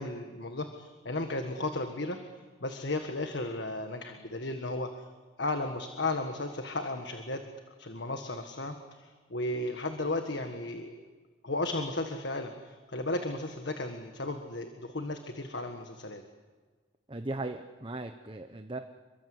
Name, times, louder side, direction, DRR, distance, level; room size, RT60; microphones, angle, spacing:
voice 1, 0.0-2.2 2.6-4.9 5.4-7.4 7.8-8.8 9.3-11.0 11.4-16.2, left 2 dB, 60° left, 6 dB, 1.7 m, -34 dB
voice 2, 17.1-18.8, right 2 dB, 25° right, 7 dB, 1.0 m, -37 dB
28.5 x 23.5 x 8.0 m, 1.4 s
head